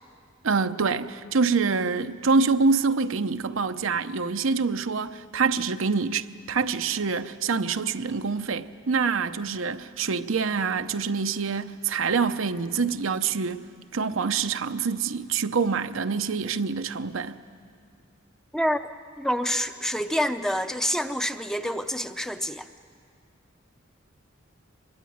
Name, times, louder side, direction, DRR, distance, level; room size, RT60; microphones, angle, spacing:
voice 1, 0.4-13.6 13.9-17.3, right 5 dB, 80° right, 0.8 m, -26 dB
voice 2, 19.2-22.7, equal, 5° left, 0.6 m, -27 dB
24.5 x 22.0 x 9.4 m
head